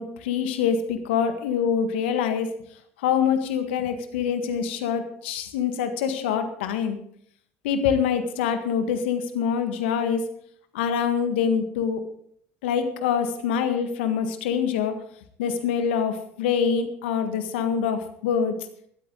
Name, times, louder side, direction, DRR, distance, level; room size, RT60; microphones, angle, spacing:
voice 1, 0.0-2.5 3.0-7.0 7.6-10.2 10.7-12.0 12.6-14.9 15.4-18.6, left 7 dB, 75° left, 8 dB, 1.7 m, -25 dB
15.5 x 13.5 x 3.9 m, 0.64 s
hypercardioid pair, 60°, 6 cm